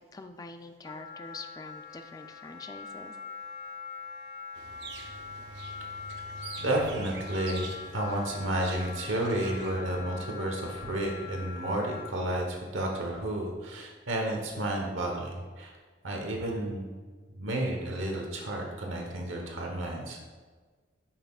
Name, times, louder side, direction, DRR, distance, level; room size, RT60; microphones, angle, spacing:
voice 1, 0.1-3.2, left 3 dB, 20° left, 7 dB, 0.4 m, -45 dB
Wind instrument woodwind instrument, 0.8-12.1, left 6 dB, 55° left, 0.9 m, -43 dB
sound 1, 4.5-9.8, right 3 dB, 55° right, 0.6 m, -44 dB
voice 2, 6.6-15.7 16.0-16.9 17.3-20.3, right 1 dB, 80° right, 1 dB, 1.1 m, -32 dB
10.0 x 5.7 x 2.4 m, 1.4 s
head